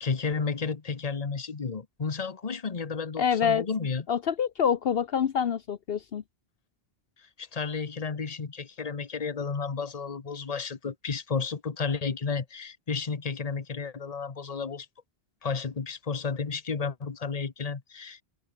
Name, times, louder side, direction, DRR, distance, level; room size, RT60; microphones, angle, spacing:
voice 1, 0.0-4.0 7.2-14.9 15.4-18.2, left 5 dB, 40° left, 1.2 m, -32 dB
voice 2, 3.2-3.7 4.1-6.2, left 7 dB, 70° left, 1.0 m, -26 dB
omnidirectional pair, 1.0 m